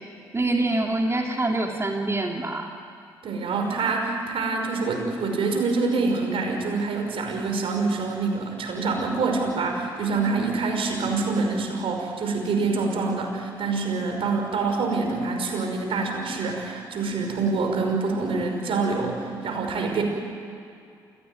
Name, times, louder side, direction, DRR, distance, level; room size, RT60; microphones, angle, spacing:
voice 1, 0.3-2.7, right 2 dB, 25° right, 1 dB, 2.8 m, -25 dB
voice 2, 3.2-20.0, right 4 dB, 55° right, 3 dB, 5.7 m, -26 dB
28.0 x 16.5 x 9.4 m, 2.4 s
hypercardioid pair, 45°, 11 cm